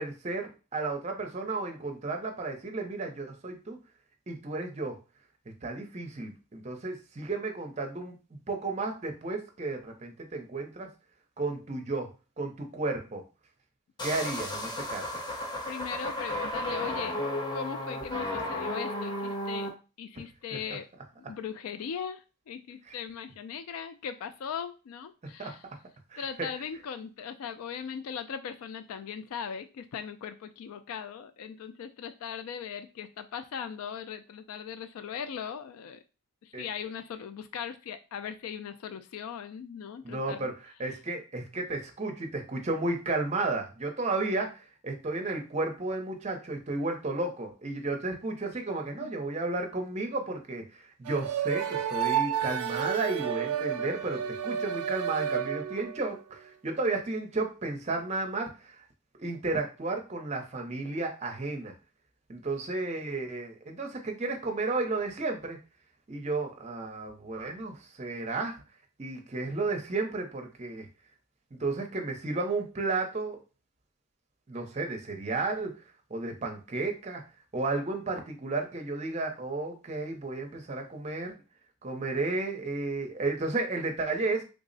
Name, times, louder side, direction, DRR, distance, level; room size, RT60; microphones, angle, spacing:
voice 1, 0.0-3.8 4.3-5.0 5.6-10.9 11.4-12.1 12.4-13.2 14.0-15.0 20.5-20.6 22.9-23.0 25.4-25.5 26.1-26.2 36.5-36.6 40.0-58.8 59.2-61.7 62.3-65.6 66.1-68.6 69.0-70.9 71.5-73.4 74.5-75.7 76.1-77.2 77.5-81.4 81.8-84.4, right 3 dB, 30° right, 3 dB, 0.6 m, -33 dB
sound 1, 14.0-19.7, left 1 dB, 20° left, 0.6 m, -33 dB
voice 2, 15.7-17.2 17.5-19.7 20.0-20.9 21.2-25.6 26.2-36.0 36.4-40.5 49.0-49.1, left 7 dB, 70° left, 10 dB, 0.3 m, -39 dB
sound 2, 51.1-56.1, right 9 dB, 85° right, 0.4 m, -31 dB
3.5 x 2.0 x 3.8 m, 0.31 s
head